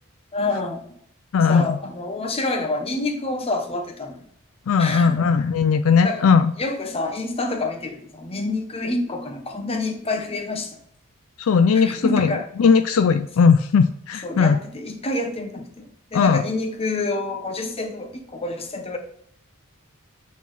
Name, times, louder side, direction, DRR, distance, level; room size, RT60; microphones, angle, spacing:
voice 1, 0.3-0.8 1.4-4.3 4.8-5.3 6.0-6.3 6.6-10.8 11.7-12.5 14.2-19.0, left 2 dB, 25° left, 3 dB, 1.0 m, -27 dB
voice 2, 1.3-1.8 4.7-6.5 11.4-14.6 16.1-16.4, left 5 dB, 70° left, 10 dB, 0.4 m, -18 dB
8.2 x 4.2 x 4.0 m, 0.67 s
head